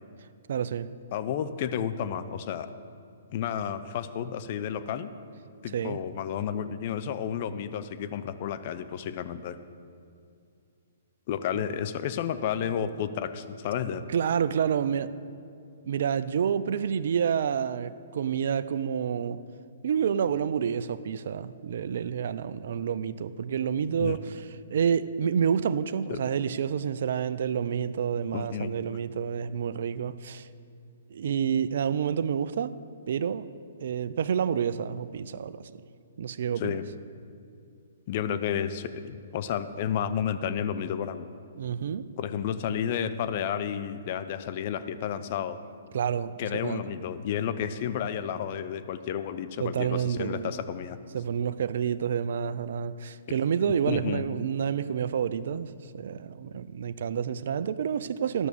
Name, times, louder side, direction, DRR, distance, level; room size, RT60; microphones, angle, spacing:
voice 1, 0.5-0.9 5.7-6.0 14.1-15.1 15.8-19.4 19.8-30.5 31.1-32.7 33.1-33.5 33.8-35.7 36.2-36.8 41.6-42.1 45.9-46.9 49.6-50.6 51.1-58.5, right 7 dB, 65° right, 0.4 m, -29 dB
voice 2, 1.1-2.7 3.3-5.1 5.6-9.6 11.3-14.0 24.0-24.2 26.1-26.2 28.3-28.7 36.6-36.8 38.1-41.3 42.2-45.6 46.4-51.0 53.9-54.2, left 8 dB, 45° left, 0.6 m, -31 dB
12.5 x 6.1 x 6.9 m
hypercardioid pair, 135°, 0 cm